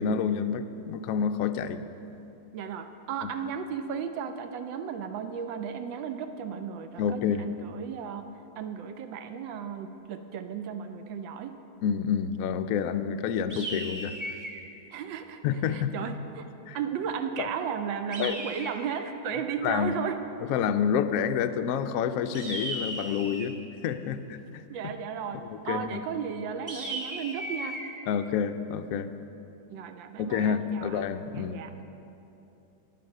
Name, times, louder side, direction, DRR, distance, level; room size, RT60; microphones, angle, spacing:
voice 1, 0.0-1.8 3.2-3.3 7.0-7.5 11.8-14.4 15.4-15.9 16.7-16.8 17.4-17.5 18.2-18.4 19.6-20.0 20.4-23.6 23.8-24.7 25.3-26.0 28.1-29.1 30.2-31.5, left 7 dB, 85° left, 9 dB, 0.7 m, -28 dB
voice 2, 2.5-8.3 8.6-11.5 14.9-15.4 15.7-16.5 16.7-20.2 24.7-27.8 29.7-31.0 31.3-31.7, right 7 dB, 80° right, 8 dB, 1.3 m, -35 dB
sound 1, 13.5-14.7 18.1-19.1 22.3-23.6 26.7-27.9, right 1 dB, 15° right, 0.8 m, -36 dB
9.7 x 9.4 x 6.5 m, 2.9 s
omnidirectional pair, 2.0 m